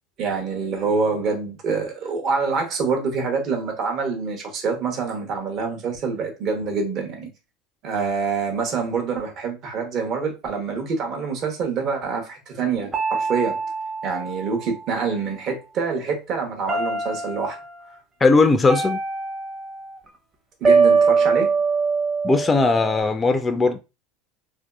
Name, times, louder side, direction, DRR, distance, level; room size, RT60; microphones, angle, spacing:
voice 1, 0.2-7.3 7.8-13.6 14.0-17.6 20.6-21.6, right 5 dB, 50° right, 0.9 m, -26 dB
sound 1, 12.9-15.3 16.7-17.7 18.7-20.0 20.6-23.0, right 4 dB, 25° right, 0.7 m, -23 dB
voice 2, 18.2-19.0 22.2-23.8, left 3 dB, 20° left, 0.3 m, -18 dB
2.6 x 2.3 x 2.3 m
hypercardioid pair, 95°, 0 cm